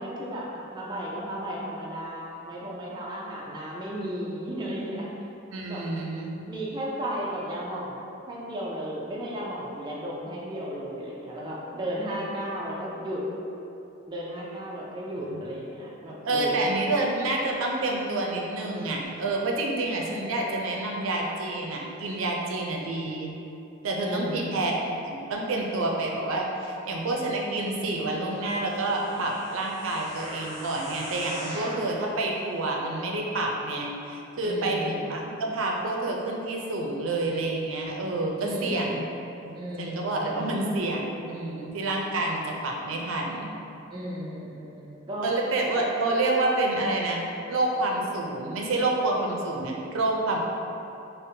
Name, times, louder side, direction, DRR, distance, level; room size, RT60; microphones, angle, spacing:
voice 1, 0.0-5.1 5.7-5.8 6.4-8.0 8.3-13.2 14.1-16.7 24.0-24.7 34.4-35.2 38.4-39.1 39.5-40.8 43.9-45.3, equal, 20° right, -5 dB, 0.4 m, -34 dB
voice 2, 5.5-6.3 15.2-15.4 16.2-23.3 23.8-24.7 25.1-39.0 39.5-43.5 45.2-50.4, right 2 dB, 80° right, -1 dB, 0.5 m, -28 dB
sound 1, 28.4-31.9 32.5-32.6, equal, 30° left, 1.0 m, -41 dB
5.1 x 2.1 x 2.7 m, 2.8 s
head